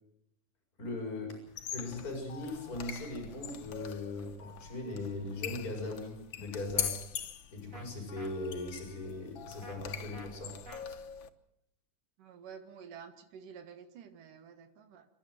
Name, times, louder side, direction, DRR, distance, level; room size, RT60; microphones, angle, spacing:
voice 1, 0.8-1.4 1.7-7.0 7.5-10.6, left 2 dB, 25° left, 1 dB, 5.7 m, -39 dB
sound 1, 1.5-11.3, left 9 dB, 70° left, 1.1 m, -42 dB
sound 2, 6.8-6.9 7.7-7.9 8.2-8.3 9.6-9.8 10.1-10.3 10.7-10.8, right 1 dB, 25° right, 3.1 m, -48 dB
voice 2, 12.2-15.1, right 7 dB, 80° right, 6 dB, 3.2 m, -50 dB
28.0 x 12.5 x 7.8 m, 0.78 s
omnidirectional pair, 3.7 m